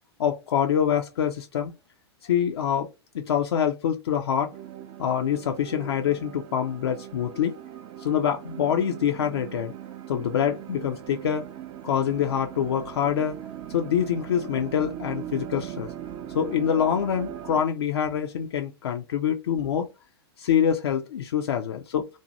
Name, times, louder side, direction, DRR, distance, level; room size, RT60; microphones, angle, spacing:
voice 1, 0.2-1.7 2.2-2.9 3.1-4.5 5.0-7.6 8.0-9.7 10.1-11.5 11.8-13.4 13.7-15.9 16.3-19.9 20.4-22.2, left 8 dB, 65° left, 0.4 m, -25 dB
sound 1, 4.5-17.6, right 10 dB, 30° right, 0.4 m, -40 dB
2.6 x 2.2 x 2.8 m
figure-of-eight pair, 105°, 14 cm